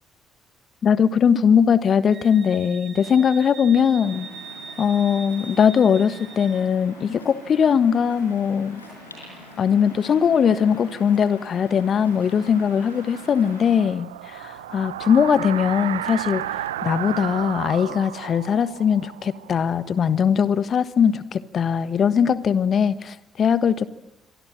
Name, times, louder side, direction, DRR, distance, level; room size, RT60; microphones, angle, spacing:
voice 1, 0.8-4.3 4.8-8.8 9.6-23.9, left 7 dB, 50° left, 15 dB, 1.3 m, -20 dB
Wind instrument woodwind instrument, 2.1-6.7, right 6 dB, 45° right, 5.3 m, -41 dB
Waves surf, 4.0-13.8, left 1 dB, 90° left, 5.6 m, -44 dB
sound 1, 11.8-20.5, right 12 dB, 80° right, 0.9 m, -34 dB
27.0 x 24.0 x 7.6 m, 0.94 s
figure-of-eight pair, 45°, 0 cm